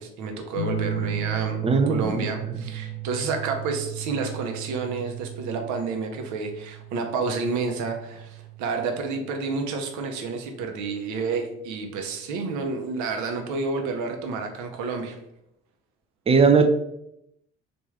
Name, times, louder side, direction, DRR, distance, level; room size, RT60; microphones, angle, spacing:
voice 1, 0.0-1.6 1.9-15.2, right 4 dB, 65° right, 5 dB, 0.8 m, -30 dB
sound 1, 0.6-9.6 11.1-11.6, right 7 dB, 80° left, 0.8 m, -35 dB
voice 2, 1.6-2.3 2.6-2.7 16.3-16.7, right 5 dB, 20° right, 7 dB, 0.4 m, -19 dB
3.4 x 2.6 x 3.2 m, 0.80 s
hypercardioid pair, 55°, 32 cm